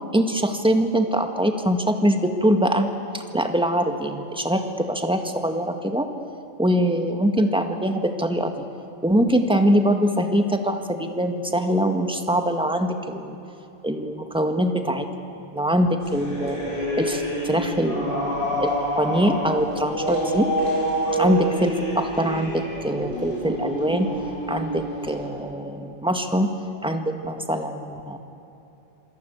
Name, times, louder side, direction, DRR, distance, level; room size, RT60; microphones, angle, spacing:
voice 1, 0.1-2.9 3.1-6.1 6.6-8.6 9.0-13.4 13.8-15.1 15.5-16.6 17.0-20.5 21.2-24.1 24.5-26.5 26.8-28.2, equal, 5° right, 5 dB, 1.8 m, -23 dB
sound 1, 16.0-25.2, right 1 dB, 60° left, 6.8 m, -27 dB
27.0 x 26.0 x 8.4 m, 3.0 s
omnidirectional pair, 1.0 m